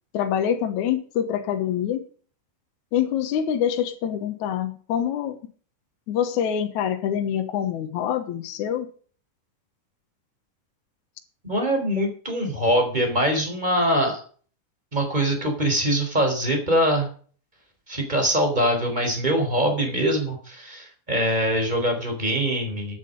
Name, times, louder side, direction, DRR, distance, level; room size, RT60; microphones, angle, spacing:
voice 1, 0.1-2.1 2.9-5.4 6.1-8.9, left 9 dB, 70° left, 7 dB, 2.5 m, -25 dB
voice 2, 11.4-14.2 14.9-17.1 17.9-23.0, equal, 15° right, 4 dB, 4.1 m, -23 dB
14.5 x 9.7 x 5.3 m, 0.42 s
omnidirectional pair, 3.7 m